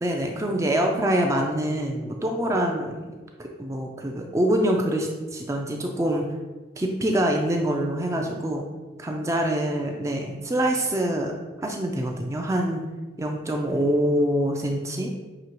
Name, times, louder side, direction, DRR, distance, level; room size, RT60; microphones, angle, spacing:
voice 1, 0.0-6.2 6.8-8.6 9.0-11.3 11.6-12.8 13.2-15.1, right 1 dB, 15° right, 1 dB, 0.3 m, -25 dB
6.1 x 2.8 x 2.9 m, 1.2 s
head